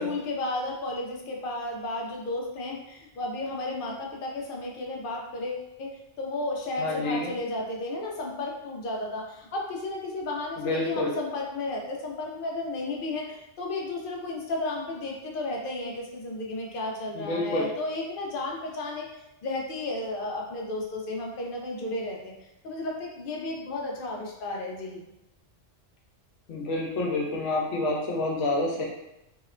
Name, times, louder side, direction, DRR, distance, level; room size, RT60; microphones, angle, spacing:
voice 1, 0.0-19.1 19.4-25.0, left 2 dB, 60° left, -1 dB, 0.6 m, -33 dB
voice 2, 6.8-7.3 10.6-11.1 17.1-17.7 26.5-28.8, left 2 dB, 85° left, -2 dB, 1.0 m, -28 dB
2.7 x 2.1 x 2.4 m, 0.89 s
omnidirectional pair, 1.2 m